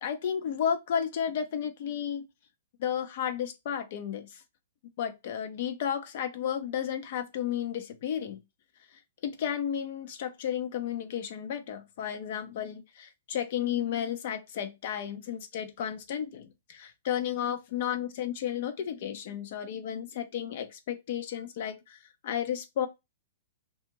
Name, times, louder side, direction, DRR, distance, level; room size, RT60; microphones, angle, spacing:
voice 1, 0.0-2.3 2.8-4.4 5.0-8.4 9.2-22.9, left 9 dB, 55° left, 0.4 m, -33 dB
2.5 x 2.3 x 2.9 m
hypercardioid pair, 140°, 0 cm